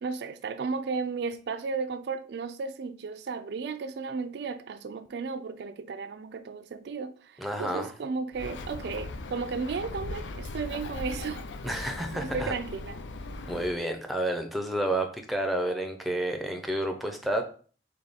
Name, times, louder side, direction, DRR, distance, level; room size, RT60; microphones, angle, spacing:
voice 1, 0.0-11.4 11.7-13.0, right 4 dB, 60° right, 0.3 m, -34 dB
voice 2, 7.4-7.9 11.6-12.5 13.5-17.4, right 1 dB, ahead, 0.5 m, -30 dB
Bird, 8.3-13.8, left 2 dB, 80° left, 0.4 m, -39 dB
3.5 x 3.5 x 4.0 m
head